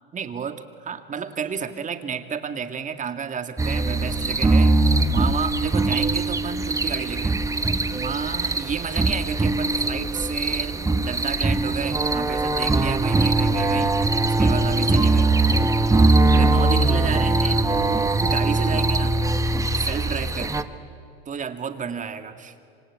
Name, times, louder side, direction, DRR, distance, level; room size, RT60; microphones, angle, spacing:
voice 1, 0.1-4.7 5.1-7.4 7.9-15.3 16.3-19.2 19.7-20.7 21.3-22.5, right 6 dB, 25° right, 8 dB, 2.2 m, -31 dB
sound 1, 3.6-20.6, right 2 dB, 10° right, 1.2 m, -21 dB
26.5 x 25.0 x 8.8 m, 2.4 s
hypercardioid pair, 100°, 29 cm